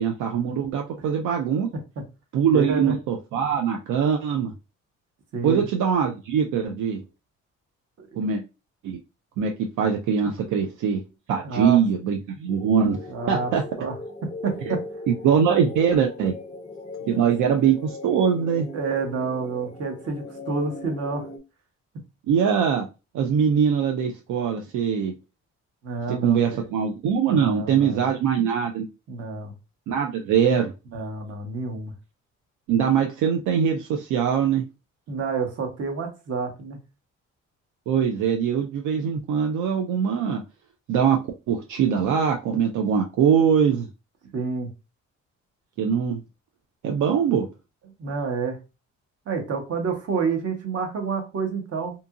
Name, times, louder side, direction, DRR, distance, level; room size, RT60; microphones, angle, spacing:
voice 1, 0.0-1.7 2.3-4.5 5.4-7.0 8.2-8.4 8.8-9.0 9.4-11.0 11.3-13.0 13.3-13.6 15.1-16.3 17.0-18.7 22.3-22.9 23.1-25.1 26.1-28.9 29.9-30.7 32.7-34.6 37.9-40.4 40.9-41.2 41.5-43.9 45.8-46.2 46.8-47.5, right 7 dB, 80° right, 3 dB, 0.5 m, -22 dB
voice 2, 2.5-2.9 5.3-5.6 8.0-8.1 10.4-10.6 11.4-11.8 13.1-13.5 13.8-13.9 14.4-14.8 17.1-17.3 18.7-21.3 25.8-26.7 27.3-28.1 29.1-29.5 30.9-31.9 35.1-36.8 44.3-44.7 48.0-48.6 49.3-51.9, right 4 dB, 55° right, 3 dB, 1.0 m, -29 dB
sound 1, 12.5-21.4, left 2 dB, 20° left, 0.4 m, -39 dB
2.7 x 2.5 x 2.4 m, 0.28 s
cardioid pair, 90°, 30 cm